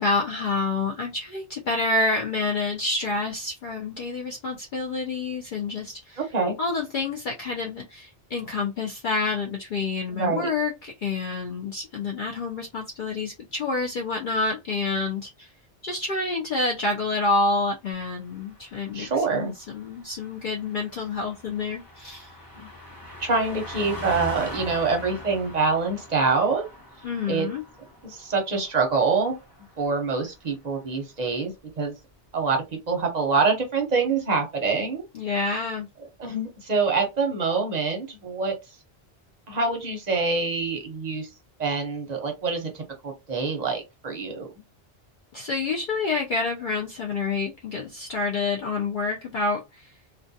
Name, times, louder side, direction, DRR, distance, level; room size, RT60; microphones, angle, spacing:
voice 1, 0.0-6.2 6.6-15.5 15.8-22.3 27.0-27.6 35.1-35.9 45.3-49.9, left 3 dB, 60° left, 0.6 m, -28 dB
voice 2, 6.2-6.5 10.1-10.5 18.9-19.5 22.6-22.7 23.2-26.7 27.3-27.5 28.0-29.4 29.8-31.9 32.3-35.0 36.2-38.5 39.5-41.3 41.6-44.5, right 4 dB, 45° right, 0.7 m, -25 dB
Car passing by, 18.0-30.0 30.3-30.5, left 1 dB, 20° left, 0.8 m, -42 dB
2.3 x 2.2 x 2.6 m
omnidirectional pair, 1.2 m